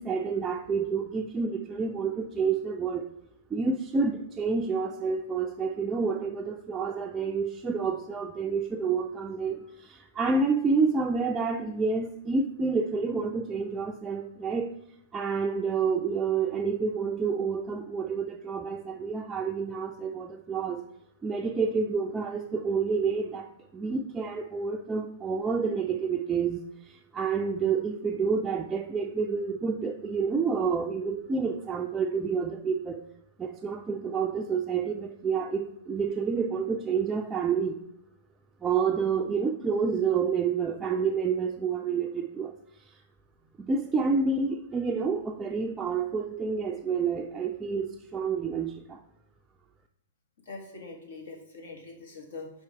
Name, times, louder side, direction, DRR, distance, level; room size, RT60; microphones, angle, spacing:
voice 1, 0.0-3.1 3.5-14.7 15.1-20.8 21.2-33.0 33.4-37.8 38.6-42.5 42.8-43.0 43.6-49.0, right 5 dB, 15° right, 2 dB, 0.4 m, -29 dB
voice 2, 50.4-52.5, left 3 dB, 70° left, 1 dB, 1.6 m, -43 dB
4.7 x 4.4 x 4.7 m, 0.81 s
hypercardioid pair, 110°, 0 cm